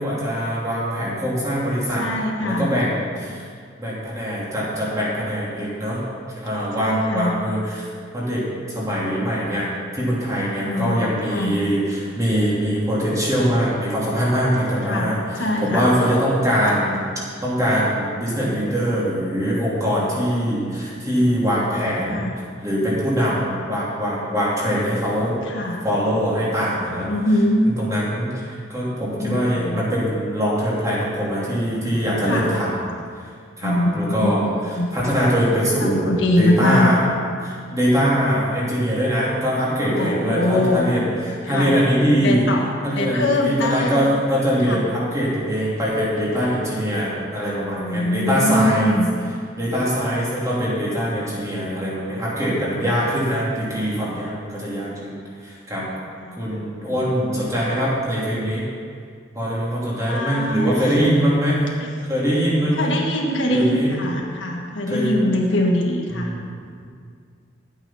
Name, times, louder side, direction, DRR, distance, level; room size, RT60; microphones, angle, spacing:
voice 1, 0.0-2.1 2.4-3.5 3.8-6.0 6.3-7.9 8.1-17.0 17.4-22.3 22.6-25.3 25.8-27.1 27.6-32.8 33.6-37.0 37.4-42.5 42.8-49.0 49.6-55.1 55.4-55.9 56.4-58.7 59.3-61.8 62.1-62.9 63.5-63.9 64.9-65.1 66.1-66.9, equal, 15° right, -7 dB, 3.0 m, -22 dB
voice 2, 2.0-2.7 6.8-7.4 10.6-11.0 11.3-11.6 14.8-15.9 22.1-22.4 25.4-25.8 27.1-27.6 29.2-29.8 32.3-32.5 33.6-34.9 35.8-36.9 39.9-40.8 41.5-41.8 42.1-44.1 44.6-44.8 47.7-49.1 54.1-54.2 56.2-56.5 60.0-60.7 62.7-66.3, left 1 dB, 75° left, 0 dB, 1.6 m, -23 dB
11.5 x 8.9 x 5.7 m, 2.1 s
head